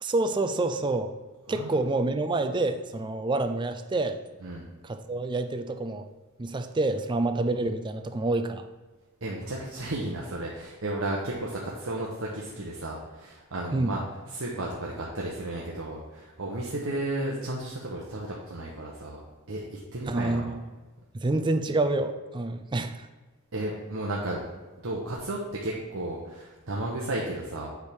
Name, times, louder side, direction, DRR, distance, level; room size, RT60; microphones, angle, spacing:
voice 1, 0.0-1.1 1.5-4.2 4.8-6.1 6.4-8.6 13.7-14.0 20.1-20.6 21.1-23.1, right 2 dB, 20° right, 8 dB, 0.4 m, -27 dB
voice 2, 1.5-1.8 4.4-4.7 9.2-14.0 14.3-19.2 19.5-20.5 23.5-24.4 24.7-27.7, right 1 dB, 70° right, -3 dB, 1.0 m, -33 dB
8.1 x 3.5 x 6.2 m, 1.3 s
head